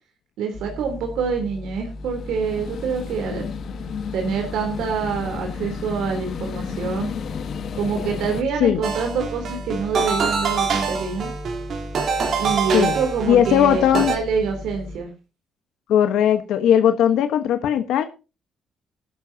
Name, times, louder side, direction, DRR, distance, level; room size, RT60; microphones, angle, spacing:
voice 1, 0.4-3.5 4.1-7.1 7.8-11.3 12.4-15.1, right 5 dB, 90° right, 3.4 m, -26 dB
sound 1, 0.5-15.0, left 2 dB, 35° left, 3.0 m, -37 dB
sound 2, 1.9-8.4, left 7 dB, 55° left, 1.5 m, -33 dB
sound 3, 8.8-14.2, right 5 dB, 60° right, 3.8 m, -25 dB
voice 2, 13.3-14.2 15.9-18.1, left 10 dB, 85° left, 1.2 m, -18 dB
17.0 x 12.5 x 2.8 m
cardioid pair, 120°, 0 cm